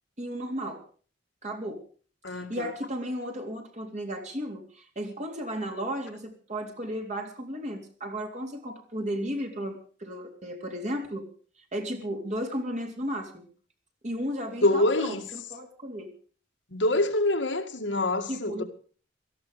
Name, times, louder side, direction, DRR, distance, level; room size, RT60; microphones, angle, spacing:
voice 1, 0.2-0.8 1.4-1.8 2.3-11.3 11.7-13.5 14.0-16.1 18.3-18.6, equal, 40° right, 3.4 m, -34 dB
voice 2, 2.2-2.7 14.6-15.2 16.7-18.6, left 2 dB, 85° left, 2.2 m, -25 dB
17.5 x 14.5 x 5.0 m
head